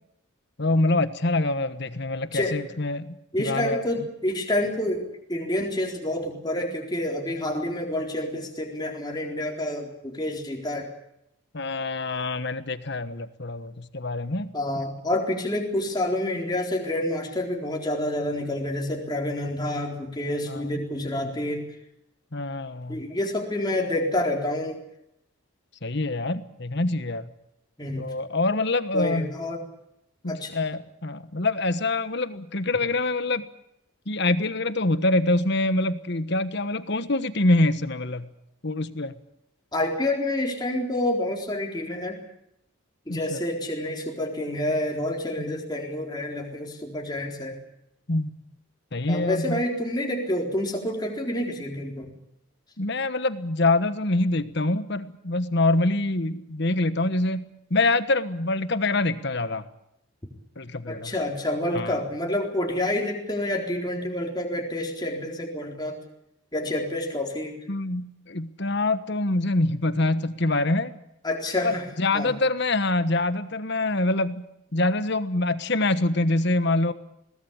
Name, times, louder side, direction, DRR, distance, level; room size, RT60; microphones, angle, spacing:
voice 1, 0.6-4.1 11.5-14.5 20.5-20.6 22.3-23.0 25.8-27.3 28.0-29.4 30.2-33.4 34.1-38.3 38.6-39.1 43.1-43.4 48.1-48.3 48.9-49.6 52.8-59.6 60.6-61.1 61.7-62.0 67.7-70.9 71.6-74.4 74.7-76.9, left 2 dB, 50° left, 13 dB, 1.3 m, -25 dB
voice 2, 3.3-10.9 14.5-21.6 22.9-24.8 27.8-28.1 28.9-29.6 30.3-30.5 39.7-42.2 43.1-47.6 49.1-52.0 60.9-66.0 66.5-67.6 71.2-71.8 72.1-72.3, left 1 dB, 20° left, 1 dB, 4.1 m, -28 dB
22.0 x 19.0 x 8.8 m, 0.80 s
head